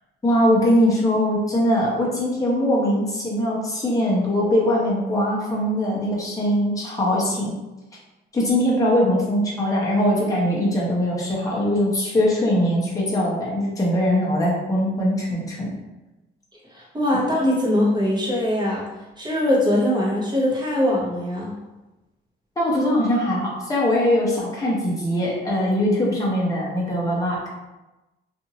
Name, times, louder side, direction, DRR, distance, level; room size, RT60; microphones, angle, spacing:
voice 1, 0.2-7.6 8.3-15.7 22.6-27.4, left 1 dB, 15° left, -5 dB, 0.9 m, -21 dB
voice 2, 16.7-18.9 19.2-21.6, left 1 dB, 20° right, -4 dB, 1.0 m, -22 dB
2.6 x 2.6 x 2.8 m, 1.0 s
cardioid pair, 90°, 20 cm